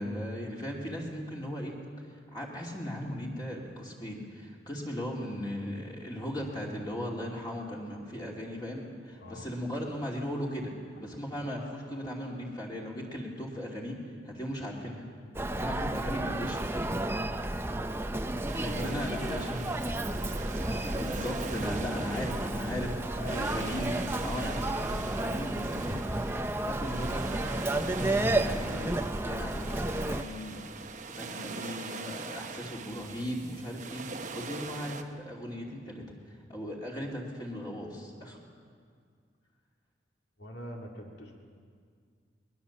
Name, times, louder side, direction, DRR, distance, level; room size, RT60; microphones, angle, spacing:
voice 1, 0.0-1.8 2.3-10.7 11.0-14.0 14.2-15.1 15.5-16.9 18.5-19.7 20.9-26.1 26.5-30.6 31.2-38.4, equal, 20° left, -3 dB, 2.7 m, -37 dB
Human voice, 15.3-30.2, right 1 dB, 15° right, 0.6 m, -32 dB
sound 1, 18.5-35.0, right 4 dB, 40° right, 1.0 m, -42 dB
voice 2, 18.6-19.1 19.3-19.8 23.1-23.9 40.4-41.4, equal, 65° left, 0 dB, 2.3 m, -43 dB
21.5 x 21.0 x 7.2 m, 2.1 s
head